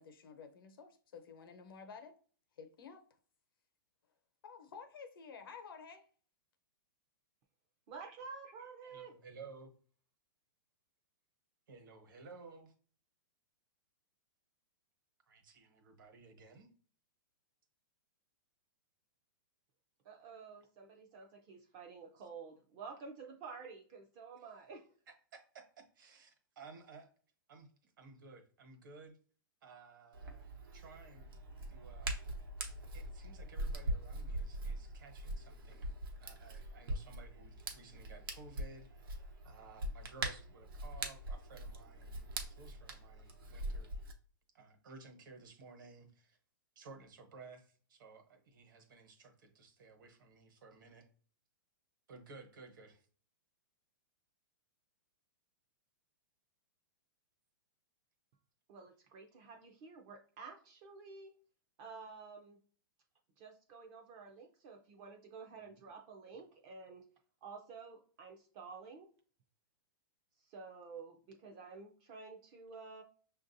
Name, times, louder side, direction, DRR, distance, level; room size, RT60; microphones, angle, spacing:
voice 1, 0.0-2.2 2.6-3.1 4.4-6.1, left 5 dB, 85° left, 0.8 m, -52 dB
voice 2, 7.9-9.1 20.0-24.8 58.7-61.3 61.8-62.6 63.4-67.0 67.4-69.1 70.4-73.0, right 5 dB, 20° right, 0.3 m, -51 dB
voice 3, 8.8-9.7 11.7-12.7 15.3-16.7 25.1-27.1 27.5-29.2 29.6-31.3 31.7-32.2 32.9-35.9 36.2-43.9 44.5-46.4 46.7-51.1 52.1-53.1, right 4 dB, 65° right, 1.1 m, -56 dB
Hands, 30.1-44.1, right 1 dB, 90° right, 0.9 m, -42 dB
5.9 x 2.5 x 2.6 m
hypercardioid pair, 175°, 12 cm